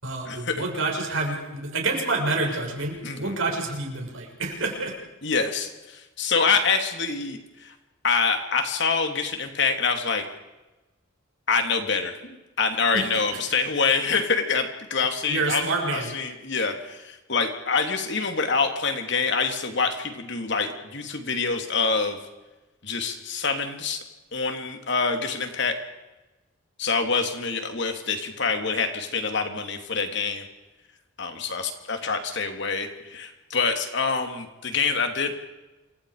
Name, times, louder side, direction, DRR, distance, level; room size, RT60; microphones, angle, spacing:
voice 1, 0.0-5.0 12.9-13.2 15.3-16.1, right 3 dB, 70° right, 0 dB, 6.8 m, -28 dB
voice 2, 5.2-7.7 8.0-10.2 11.5-15.6 15.9-22.2 22.8-24.0 24.3-25.8 26.8-30.4 31.2-35.4, left 4 dB, 60° left, 5 dB, 3.2 m, -26 dB
28.0 x 25.5 x 5.1 m, 1.1 s
head